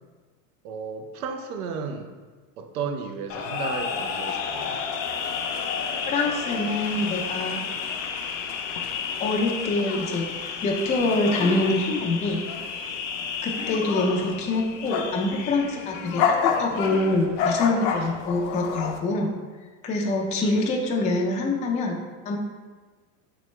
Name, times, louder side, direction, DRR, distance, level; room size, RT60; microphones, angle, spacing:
voice 1, 0.6-2.1 2.6-4.8 20.4-20.8, right 5 dB, 85° right, 5 dB, 0.6 m, -34 dB
sound 1, 3.3-19.0, left 6 dB, 65° left, 0.6 m, -30 dB
voice 2, 6.1-7.6 9.2-10.3 10.6-12.4 13.4-19.3 19.8-22.0 22.3-22.4, left 2 dB, 20° left, 0 dB, 0.3 m, -25 dB
3.5 x 3.2 x 3.1 m, 1.4 s
supercardioid pair, 100°, 42 cm